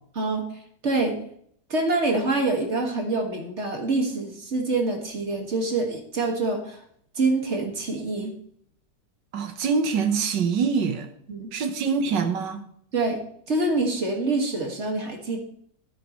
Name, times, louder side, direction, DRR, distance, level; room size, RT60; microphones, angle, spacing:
voice 1, 0.1-0.5 0.8-1.2 1.7-6.8 7.2-8.3 11.3-11.5 12.9-13.2 13.5-15.4, right 3 dB, 40° right, 2 dB, 2.1 m, -25 dB
voice 2, 9.3-11.1 11.5-12.6, right 5 dB, 80° right, 8 dB, 1.8 m, -24 dB
12.5 x 9.5 x 3.1 m, 0.65 s
omnidirectional pair, 1.9 m